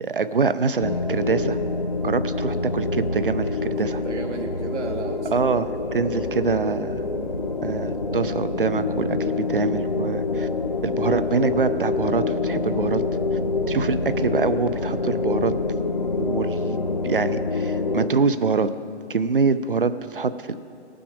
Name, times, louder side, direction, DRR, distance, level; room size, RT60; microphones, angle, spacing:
voice 1, 0.0-1.6 2.0-4.0 5.3-7.0 7.6-10.5 10.8-13.0 13.7-15.5 16.2-16.8 17.0-18.7 19.1-20.6, right 4 dB, 50° right, 12 dB, 0.5 m, -24 dB
sound 1, 0.8-18.1, left 3 dB, 40° left, 0.4 m, -26 dB
voice 2, 3.6-5.5, right 5 dB, 80° right, 3 dB, 1.0 m, -34 dB
18.0 x 6.1 x 4.9 m, 2.6 s
hypercardioid pair, 180°, 34 cm